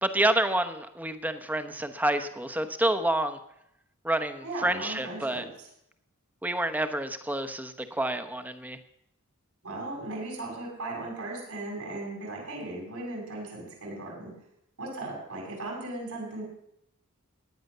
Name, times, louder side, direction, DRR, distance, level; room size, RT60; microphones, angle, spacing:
voice 1, 0.0-3.4 4.0-5.4 6.4-8.8, right 1 dB, 10° right, 8 dB, 1.0 m, -28 dB
voice 2, 4.4-5.7 9.6-14.3 14.8-16.4, right 2 dB, 80° right, -3 dB, 7.1 m, -37 dB
17.5 x 10.0 x 6.7 m, 0.77 s
head